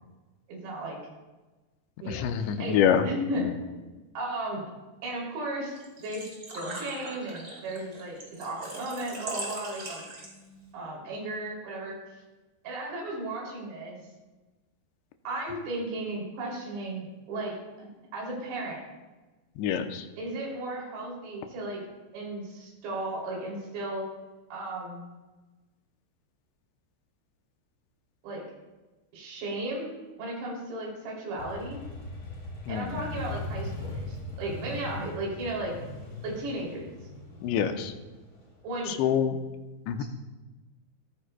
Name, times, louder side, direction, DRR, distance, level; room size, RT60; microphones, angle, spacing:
voice 1, 0.5-1.0 2.0-3.7 4.2-4.6 5.0-6.3 6.5-10.0 10.7-12.0 12.6-14.0 15.3-18.8 20.2-21.8 22.1-24.0 24.5-25.0 28.2-28.4 29.1-29.9 30.2-31.8 32.7-35.7 36.2-36.9 38.6-39.0, right 1 dB, 75° right, -3 dB, 5.2 m, -35 dB
voice 2, 2.1-3.1 3.4-3.5 19.6-20.1 32.7-33.0 37.4-37.9 38.9-39.4 39.9-40.0, left 8 dB, 85° left, 6 dB, 3.0 m, -26 dB
Engine / Trickle dribble / Fill (with liquid), 5.8-10.6, right 2 dB, 25° right, 2.2 m, -40 dB
Motorcycle, 31.4-39.0, left 1 dB, 55° left, 5.5 m, -39 dB
16.5 x 14.0 x 2.3 m, 1.2 s
omnidirectional pair, 5.0 m